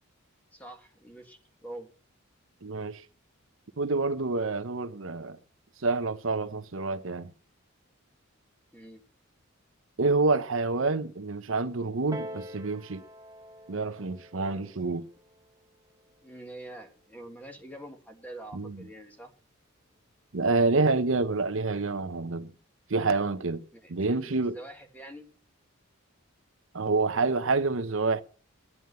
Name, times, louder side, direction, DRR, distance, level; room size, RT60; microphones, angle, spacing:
voice 1, 0.5-1.9 8.7-9.0 10.9-11.0 16.2-19.3 23.7-25.3, right 1 dB, 5° left, 1.7 m, -45 dB
voice 2, 2.6-3.0 3.8-5.4 5.8-7.3 10.0-13.0 13.7-15.0 18.5-18.8 20.3-22.5 22.9-23.6 23.9-24.6 26.7-28.2, right 3 dB, 65° right, 0.8 m, -27 dB
Piano, 12.1-17.3 18.1-18.2, equal, 15° right, 1.0 m, -46 dB
11.0 x 9.5 x 6.7 m
head